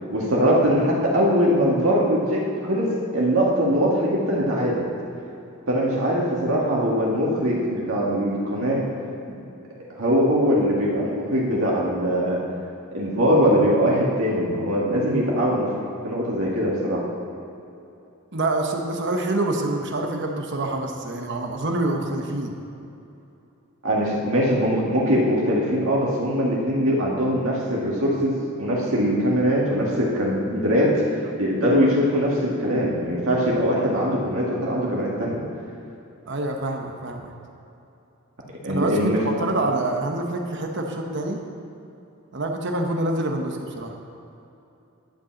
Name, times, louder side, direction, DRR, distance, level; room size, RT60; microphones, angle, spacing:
voice 1, 0.1-4.8 5.7-8.8 10.0-12.4 12.9-15.7 16.0-17.0 23.8-35.4 38.6-39.2, equal, 80° right, -4 dB, 2.0 m, -22 dB
voice 2, 18.3-22.5 36.3-37.3 38.7-41.4 42.3-43.9, right 2 dB, 55° right, 3 dB, 1.0 m, -26 dB
11.5 x 5.3 x 7.2 m, 2.8 s
head